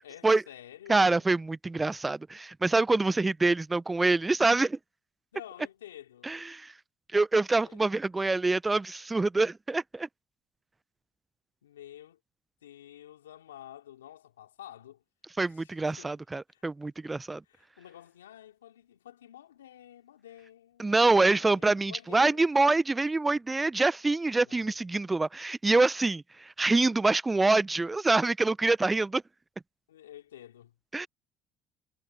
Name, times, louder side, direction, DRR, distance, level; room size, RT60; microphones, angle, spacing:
voice 1, 0.0-1.2 5.3-6.3 7.6-7.8 11.6-12.2 12.6-15.0 15.4-16.2 16.5-16.6 17.4-22.6 24.4-24.8 29.9-30.7, left 12 dB, 90° left, 2.9 m, -50 dB
voice 2, 0.9-4.8 6.2-6.7 7.1-10.1 15.4-17.4 20.8-29.2 30.9-31.1, right 3 dB, 20° right, 0.7 m, -25 dB
hypercardioid pair, 60°, 0 cm